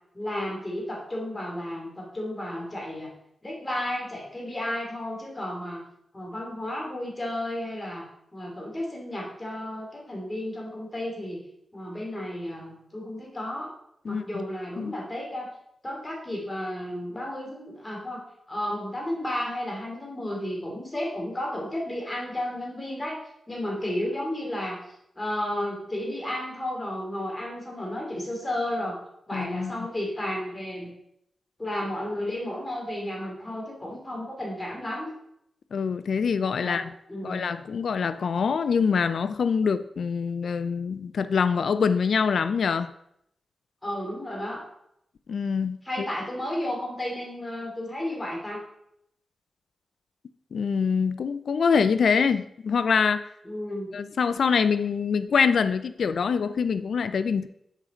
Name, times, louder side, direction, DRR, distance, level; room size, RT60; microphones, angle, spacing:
voice 1, 0.1-3.1 3.4-5.8 6.1-8.0 8.3-11.4 11.7-13.7 14.0-15.5 15.8-18.2 18.5-23.2 23.5-29.0 29.3-30.9 31.6-35.1 36.6-36.8 37.1-37.5 43.8-44.6 45.8-48.6 53.4-53.9, left 1 dB, 20° left, -2 dB, 2.7 m, -32 dB
voice 2, 29.3-29.7 35.7-36.9 37.2-42.9 45.3-46.1 50.5-53.2 53.9-57.5, left 6 dB, 75° left, 13 dB, 0.4 m, -25 dB
7.3 x 5.1 x 4.3 m, 0.75 s
wide cardioid pair, 90°, 0 cm